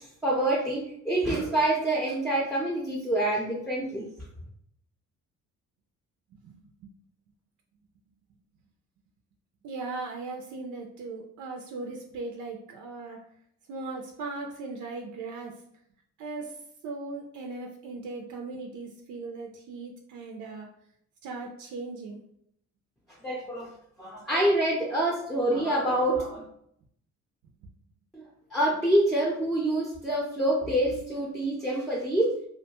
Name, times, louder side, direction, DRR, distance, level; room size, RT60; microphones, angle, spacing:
voice 1, 0.0-4.1 23.2-23.7 24.0-26.4 28.1-28.2 28.5-32.4, right 1 dB, ahead, -3 dB, 0.6 m, -26 dB
voice 2, 6.4-6.9 9.6-13.2 13.7-15.5 16.2-16.6 16.8-20.7 21.2-22.2, right 3 dB, 80° right, 1 dB, 0.5 m, -38 dB
2.5 x 2.1 x 2.9 m, 0.71 s
cardioid pair, 90°, 30 cm